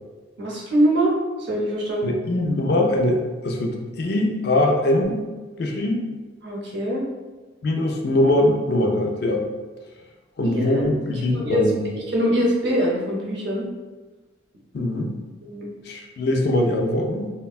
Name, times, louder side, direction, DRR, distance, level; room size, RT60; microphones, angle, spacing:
voice 1, 0.4-1.1 1.5-2.1 6.4-7.0 10.4-10.9 11.3-11.7 12.1-13.6 15.4-15.7, equal, 60° right, -3 dB, 0.7 m, -23 dB
voice 2, 2.0-5.2 5.6-6.0 7.6-9.4 10.4-11.9 14.7-15.2 15.9-17.3, left 1 dB, 55° left, 2 dB, 0.4 m, -22 dB
3.4 x 2.1 x 2.3 m, 1.3 s
head